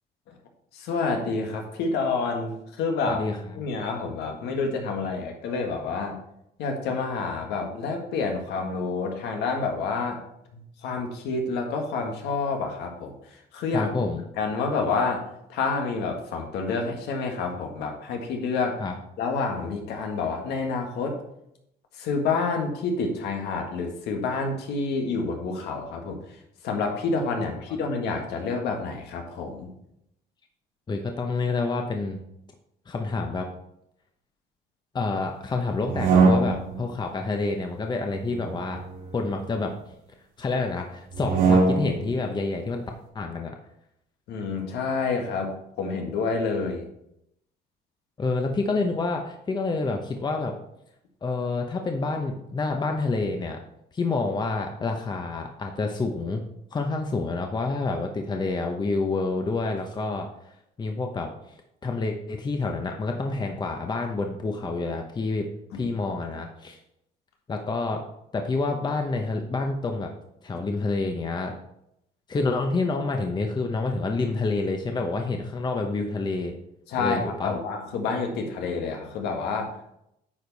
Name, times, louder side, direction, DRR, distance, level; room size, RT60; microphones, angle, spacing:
voice 1, 0.7-3.2 3.5-6.2 6.6-10.2 10.5-13.2 13.5-13.9 14.4-15.2 15.5-18.8 19.2-21.2 22.0-26.2 26.6-29.7 44.3-46.9 65.7-65.9 76.9-79.8, left 4 dB, 80° left, 3 dB, 1.7 m, -28 dB
voice 2, 3.0-3.6 13.7-14.2 18.8-18.9 30.9-32.2 32.9-33.5 34.9-38.8 39.1-39.7 40.4-42.8 43.1-43.5 48.2-50.5 51.2-53.6 53.9-56.4 56.7-60.3 60.8-61.3 61.8-65.5 65.7-66.8 67.5-68.0 68.3-70.1 70.4-71.5 72.3-76.5 77.0-77.5, left 3 dB, 25° left, 3 dB, 0.9 m, -28 dB
sound 1, 35.8-36.9 38.1-39.8 41.1-42.1, right 4 dB, 80° right, 2.3 m, -23 dB
9.4 x 5.1 x 4.1 m, 0.79 s
cardioid pair, 110°, 17 cm